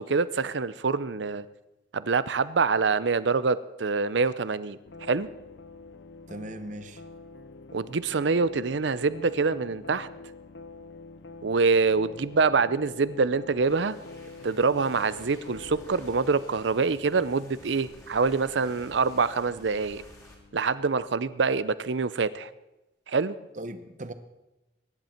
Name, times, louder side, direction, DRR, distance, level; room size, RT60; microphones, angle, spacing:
voice 1, 0.0-1.5 1.9-5.3 7.7-10.1 11.4-14.0 14.4-20.0 20.5-22.5 23.1-23.4, right 4 dB, 80° right, 16 dB, 0.6 m, -25 dB
sound 1, 4.9-21.6, left 3 dB, 80° left, 0.8 m, -47 dB
voice 2, 6.3-7.0 23.6-24.1, right 1 dB, 40° right, 11 dB, 1.0 m, -38 dB
sound 2, 13.4-20.4, left 1 dB, 15° left, 2.9 m, -53 dB
22.5 x 11.0 x 4.4 m, 0.97 s
head